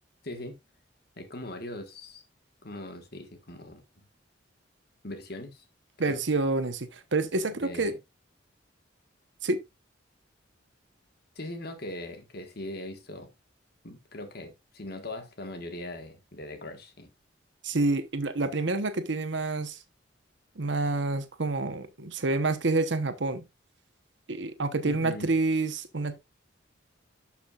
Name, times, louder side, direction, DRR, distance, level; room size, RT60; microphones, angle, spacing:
voice 1, 0.2-0.6 1.2-2.2 2.6-4.0 5.0-5.6 6.0-6.2 7.6-8.0 11.3-13.3 13.8-17.1 24.8-25.3, left 1 dB, 55° left, 1.5 m, -40 dB
voice 2, 6.0-7.9 9.4-9.6 17.6-19.8 20.6-23.4 24.3-26.2, right 3 dB, 65° right, 1.0 m, -28 dB
12.0 x 6.0 x 2.4 m
head